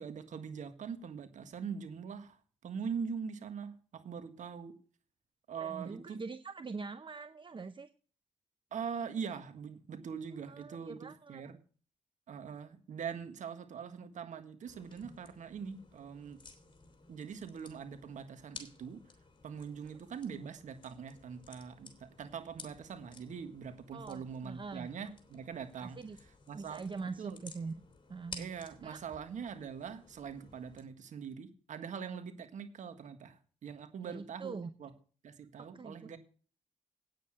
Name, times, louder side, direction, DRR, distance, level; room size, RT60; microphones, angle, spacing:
voice 1, 0.0-4.7 5.5-6.2 8.7-11.6 12.3-16.4 17.1-19.0 19.4-26.0 26.5-26.8 27.2-27.4 28.4-34.9 35.2-36.2, right 6 dB, 75° right, 9 dB, 1.6 m, -42 dB
voice 2, 5.6-7.9 10.5-11.4 19.9-20.0 23.9-24.9 25.8-26.2 26.5-27.8 28.1-28.5 28.8-29.0 34.0-34.7 35.6-35.9, right 4 dB, 40° right, 11 dB, 0.9 m, -43 dB
sound 1, 14.7-30.8, left 3 dB, 40° left, 3.2 m, -55 dB
9.2 x 8.0 x 6.5 m, 0.39 s
supercardioid pair, 50°, 13 cm